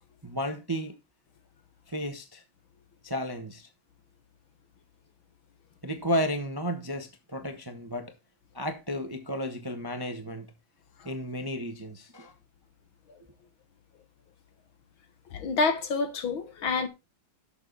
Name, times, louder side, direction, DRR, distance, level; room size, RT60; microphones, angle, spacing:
voice 1, 0.2-0.9 1.9-2.4 3.0-3.7 5.8-8.1 8.5-10.5 11.0-12.3, equal, 15° right, 0.8 m, -33 dB
voice 2, 15.3-16.9, left 4 dB, 70° left, 2.1 m, -28 dB
12.0 x 7.0 x 4.0 m
omnidirectional pair, 2.3 m